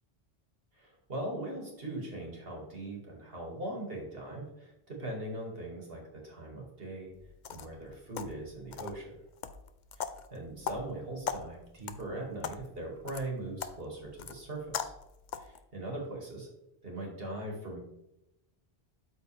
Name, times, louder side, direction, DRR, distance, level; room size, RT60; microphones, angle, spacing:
voice 1, 0.7-7.1 7.5-9.2 10.0-14.9 15.3-16.5 16.8-17.8, right 1 dB, 65° right, -1 dB, 2.4 m, -40 dB
sound 1, 7.1-15.6, left 7 dB, 55° left, 0.6 m, -42 dB
12.5 x 4.3 x 3.4 m, 0.89 s
omnidirectional pair, 1.1 m